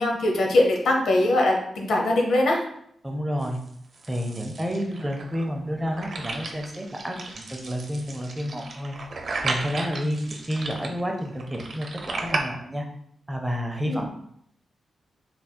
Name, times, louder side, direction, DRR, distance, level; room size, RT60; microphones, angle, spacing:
voice 1, 0.0-2.6 13.9-14.0, left 1 dB, 80° left, 1 dB, 0.8 m, -21 dB
voice 2, 3.0-3.6 4.1-8.9 9.4-12.9 13.3-14.1, equal, 10° right, 2 dB, 0.6 m, -30 dB
sound 1, 3.4-12.4, right 3 dB, 55° right, 0.6 m, -35 dB
4.0 x 3.5 x 2.3 m, 0.70 s
cardioid pair, 75°, 0 cm